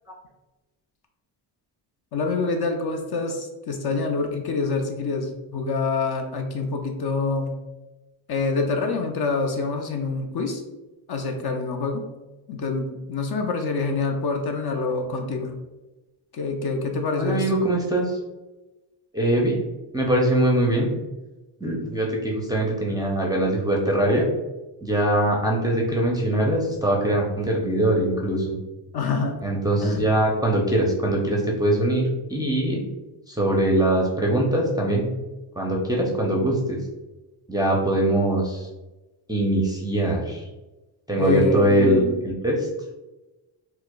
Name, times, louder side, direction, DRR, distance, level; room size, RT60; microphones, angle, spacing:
voice 1, 2.1-7.5 8.3-10.6 11.1-12.0 12.5-15.5 16.3-17.6 28.9-29.4 29.8-30.1 41.2-42.2, left 3 dB, 50° left, 4 dB, 0.6 m, -26 dB
voice 2, 17.2-18.2 19.1-19.6 19.9-20.9 21.6-24.2 24.8-28.6 29.4-32.8 33.3-35.1 35.6-36.8 37.5-38.7 39.3-40.4 41.1-42.7, right 1 dB, 10° right, -2 dB, 0.4 m, -22 dB
4.5 x 2.0 x 2.2 m, 1.1 s
cardioid pair, 95°, 50 cm